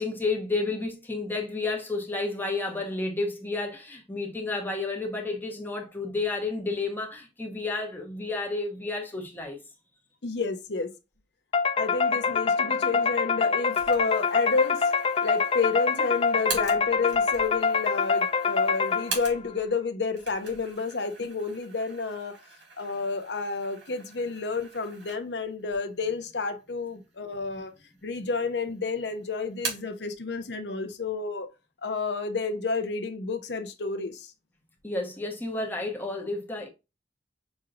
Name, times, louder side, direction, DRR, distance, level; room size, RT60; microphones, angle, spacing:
voice 1, 0.0-9.6 34.8-36.7, left 3 dB, 10° left, 1.1 m, -31 dB
voice 2, 10.2-10.9 11.8-14.9 15.2-22.4 22.8-27.7 28.0-31.5 31.8-34.3, left 4 dB, 75° left, 0.8 m, -30 dB
sound 1, 11.5-19.4, left 5 dB, 30° left, 0.4 m, -25 dB
sound 2, 13.7-19.7 20.1-25.5 25.9-26.0 26.9-27.5 27.9-28.6 28.9-30.0, right 4 dB, 85° right, 2.7 m, -41 dB
6.2 x 3.0 x 2.4 m
head